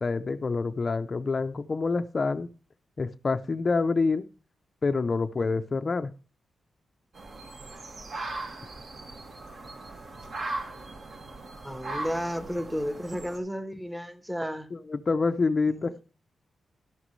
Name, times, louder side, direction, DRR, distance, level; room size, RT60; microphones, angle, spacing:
voice 1, 0.0-2.5 3.0-4.2 4.8-6.1 14.7-16.0, left 4 dB, 35° left, 0.5 m, -27 dB
sound 1, 7.1-13.4, right 2 dB, 50° right, 2.0 m, -39 dB
voice 2, 11.6-14.7 15.7-15.8, equal, 5° right, 1.1 m, -32 dB
12.0 x 11.0 x 3.2 m
wide cardioid pair, 135°, 0 cm